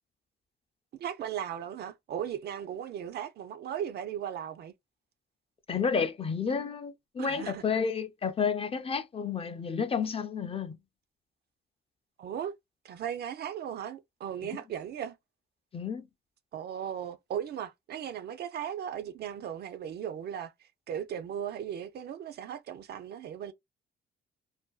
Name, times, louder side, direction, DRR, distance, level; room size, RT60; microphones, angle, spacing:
voice 1, 0.9-4.7 7.2-7.6 12.2-12.5 12.8-15.2 16.5-23.5, right 9 dB, 55° right, 0.4 m, -37 dB
voice 2, 5.7-10.8 14.4-14.5 15.7-16.1, left 6 dB, 30° left, 0.4 m, -31 dB
2.5 x 2.2 x 2.3 m
cardioid pair, 90°, 20 cm